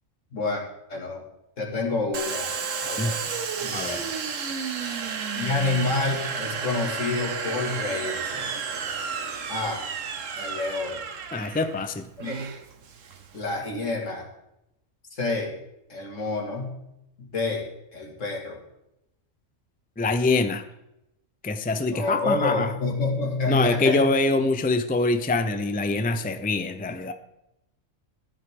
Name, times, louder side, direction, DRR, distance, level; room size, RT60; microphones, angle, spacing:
voice 1, 0.3-0.6 0.9-1.2 1.6-2.5 2.8-3.2 3.6-4.1 5.4-8.4 9.5-9.8 10.4-11.0 12.2-12.3 13.3-14.3 15.1-15.5 15.9-16.8 17.2-17.6 17.9-18.6 21.9-24.0, left 3 dB, 70° left, 0 dB, 2.7 m, -28 dB
Domestic sounds home sounds, 2.1-13.5, right 6 dB, 70° right, 1.4 m, -32 dB
voice 2, 3.7-4.0 11.3-12.0 20.0-20.6 21.4-22.7 23.5-27.1, left 3 dB, 15° left, 9 dB, 0.3 m, -24 dB
14.5 x 11.5 x 3.8 m, 0.87 s
omnidirectional pair, 1.4 m